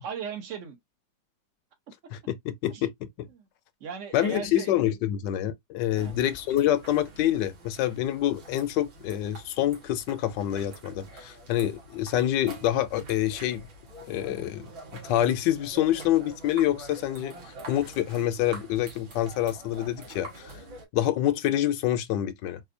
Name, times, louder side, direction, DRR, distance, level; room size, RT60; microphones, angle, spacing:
voice 1, 0.0-0.8 2.7-2.9 3.3-3.5 3.8-4.7 5.9-6.1, right 7 dB, 55° right, 1.0 m, -37 dB
voice 2, 2.1-2.9 3.2-3.3 4.1-13.7 14.1-14.7 14.9-17.3 17.7-20.5 20.9-22.6, left 12 dB, 75° left, 1.2 m, -27 dB
sound 1, 6.0-20.9, right 2 dB, 80° right, 2.3 m, -46 dB
4.2 x 2.6 x 2.5 m
omnidirectional pair, 2.1 m